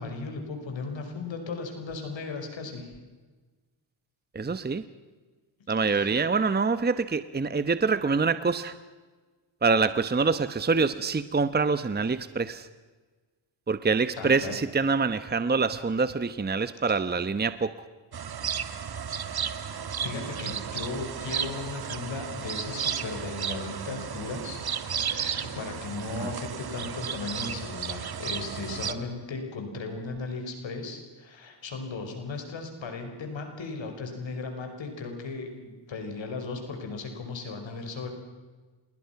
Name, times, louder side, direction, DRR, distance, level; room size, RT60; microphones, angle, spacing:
voice 1, 0.0-2.9 5.9-6.2 14.2-14.5 18.9-19.0 20.0-24.6 25.0-38.1, left 3 dB, 70° left, 5 dB, 5.5 m, -36 dB
voice 2, 4.3-4.8 5.7-8.8 9.6-12.7 13.7-17.7 26.2-26.3, right 4 dB, 20° right, 13 dB, 1.0 m, -25 dB
sound 1, 18.1-28.9, right 7 dB, 50° right, 1.7 m, -33 dB
27.0 x 22.0 x 5.9 m, 1.3 s
cardioid pair, 75°, 47 cm